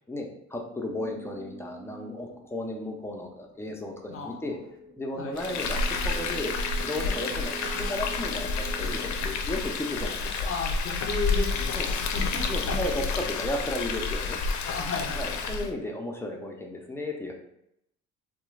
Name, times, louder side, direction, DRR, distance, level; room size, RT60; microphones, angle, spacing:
voice 1, 0.1-4.6 5.0-7.6 7.9-10.5 11.7-11.9 12.5-14.4 15.2-17.3, left 1 dB, 10° left, 1 dB, 0.6 m, -34 dB
sound 1, 0.8-10.6, right 4 dB, 85° right, 1.0 m, -45 dB
voice 2, 4.1-4.5 5.2-5.3 7.7-8.2 9.2-9.3 10.4-12.9 14.7-15.6, left 3 dB, 50° left, 2 dB, 0.8 m, -34 dB
Frying (food), 5.4-15.7, left 4 dB, 70° left, 0.5 m, -29 dB
2.9 x 2.3 x 3.3 m, 0.77 s
cardioid pair, 90°, 30 cm